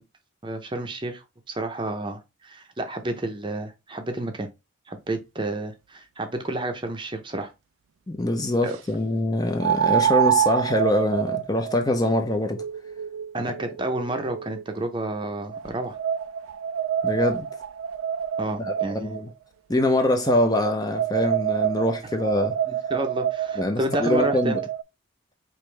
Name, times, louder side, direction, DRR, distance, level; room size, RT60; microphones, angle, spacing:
voice 1, 0.4-4.5 4.9-7.5 8.6-8.8 13.3-16.0 18.4-19.2 22.7-24.6, right 1 dB, 25° right, 0.6 m, -30 dB
sound 1, 7.0-7.1 9.6-14.8 15.5-19.2 20.2-24.8, right 9 dB, 80° right, 0.4 m, -27 dB
voice 2, 8.1-12.6 17.0-17.5 18.6-19.3 19.7-22.6 23.6-24.6, left 1 dB, 20° left, 0.5 m, -24 dB
5.1 x 3.0 x 3.2 m
head